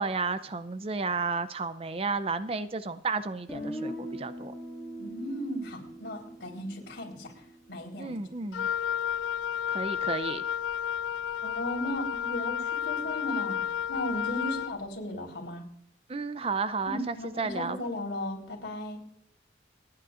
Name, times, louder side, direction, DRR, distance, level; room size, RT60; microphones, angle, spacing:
voice 1, 0.0-4.5 8.0-8.7 9.7-10.4 16.1-17.8, right 4 dB, 30° right, 12 dB, 0.5 m, -32 dB
Guitar, 3.5-7.4, equal, ahead, 5.8 m, -40 dB
voice 2, 5.0-7.3 7.7-8.2 8.4-8.5 11.4-13.6 13.9-15.6 16.9-19.0, left 1 dB, 65° left, 0 dB, 4.1 m, -36 dB
Wind instrument woodwind instrument, 8.5-14.8, left 9 dB, 90° left, 0.4 m, -31 dB
28.5 x 9.6 x 2.5 m, 0.68 s
head